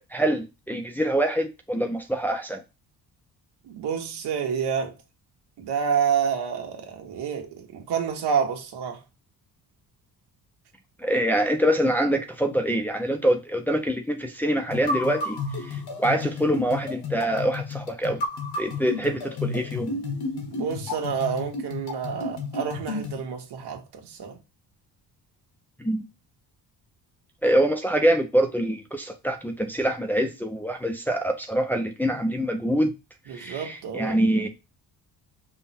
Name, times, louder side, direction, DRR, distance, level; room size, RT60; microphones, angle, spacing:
voice 1, 0.1-2.6 11.0-18.2 18.6-19.9 25.8-26.0 27.4-32.9 33.3-34.5, right 1 dB, 5° left, 0.4 m, -25 dB
voice 2, 3.6-5.0 5.6-9.0 20.5-24.4 33.3-34.2, right 7 dB, 90° right, 1.3 m, -28 dB
sound 1, 14.7-23.2, left 3 dB, 70° left, 1.3 m, -32 dB
5.5 x 2.2 x 4.2 m
cardioid pair, 170°, 39 cm